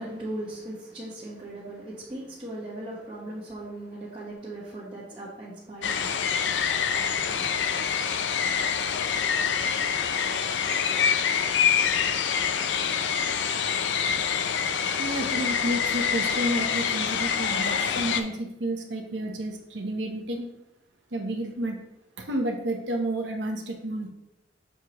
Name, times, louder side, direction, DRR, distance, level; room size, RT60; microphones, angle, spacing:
voice 1, 0.0-6.1 7.3-7.4, right 1 dB, 25° right, -9 dB, 1.3 m, -38 dB
sound 1, 5.8-18.2, left 7 dB, 90° left, 0.5 m, -26 dB
voice 2, 15.0-20.5 21.1-21.8 22.2-24.1, right 1 dB, 85° right, 2 dB, 0.9 m, -31 dB
6.7 x 4.7 x 3.0 m, 0.89 s
head